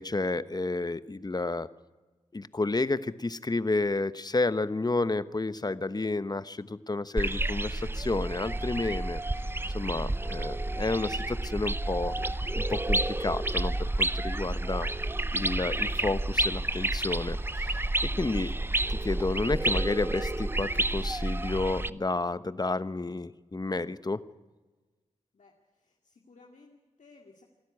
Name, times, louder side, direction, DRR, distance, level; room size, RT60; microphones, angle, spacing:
voice 1, 0.0-1.7 2.3-9.5 9.7-12.1 12.5-14.9 15.3-17.9 18.2-18.5 18.9-24.2, left 2 dB, 30° left, 14 dB, 1.0 m, -31 dB
sound 1, 7.2-21.9, right 2 dB, 15° right, 0.7 m, -30 dB
voice 2, 25.3-27.4, left 3 dB, 70° left, 0 dB, 2.4 m, -58 dB
25.5 x 13.0 x 9.8 m, 1.3 s
cardioid pair, 50°, 13 cm